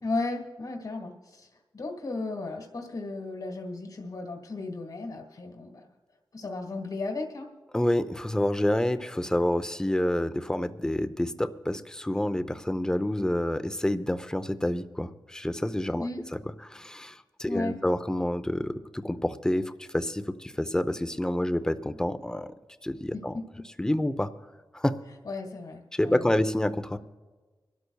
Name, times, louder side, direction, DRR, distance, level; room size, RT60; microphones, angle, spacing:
voice 1, 0.0-1.5 1.7-5.8 6.3-7.5 16.0-16.2 17.4-17.8 23.1-23.4 25.2-26.2, left 3 dB, 65° left, 1 dB, 1.7 m, -35 dB
voice 2, 7.7-16.4 16.7-22.5 22.8-23.4 23.8-24.3 24.7-25.0 25.9-27.0, left 1 dB, 10° left, 11 dB, 0.7 m, -28 dB
25.5 x 13.0 x 2.3 m, 1.3 s
wide cardioid pair, 80°, 8 cm